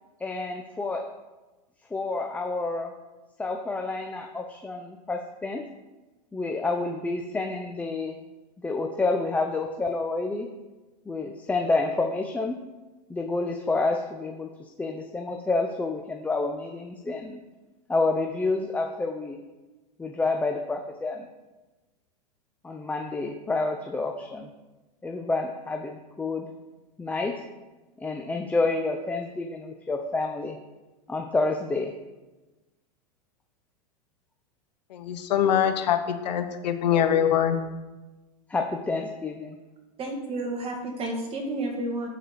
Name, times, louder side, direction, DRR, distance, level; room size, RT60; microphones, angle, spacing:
voice 1, 0.2-1.1 1.9-2.9 3.4-5.7 6.3-8.2 8.6-10.5 11.1-12.6 13.1-17.4 17.9-19.4 20.0-21.3 22.6-24.5 25.0-26.5 27.0-27.5 28.0-30.6 31.1-31.9 38.5-39.6, left 3 dB, 5° left, 3 dB, 0.5 m, -29 dB
voice 2, 34.9-37.6, left 9 dB, 80° left, 8 dB, 1.0 m, -23 dB
voice 3, 40.0-42.1, right 2 dB, 25° right, 1 dB, 1.9 m, -31 dB
11.0 x 4.1 x 4.7 m, 1.1 s
hypercardioid pair, 130°, 21 cm